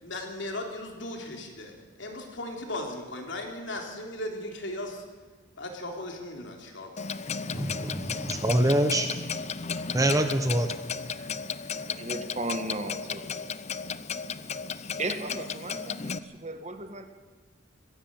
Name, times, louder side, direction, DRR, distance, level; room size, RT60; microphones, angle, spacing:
voice 1, 0.0-1.7 2.0-5.0 5.6-7.2, left 1 dB, 60° left, 2 dB, 3.6 m, -37 dB
Clock, 7.0-16.2, left 6 dB, 35° left, 0.6 m, -35 dB
voice 2, 7.5-9.2 9.9-10.7, right 1 dB, 15° right, 7 dB, 1.1 m, -25 dB
voice 3, 11.8-13.3 15.0-17.0, right 2 dB, 35° right, 7 dB, 1.6 m, -36 dB
20.5 x 15.5 x 9.0 m, 1.4 s
head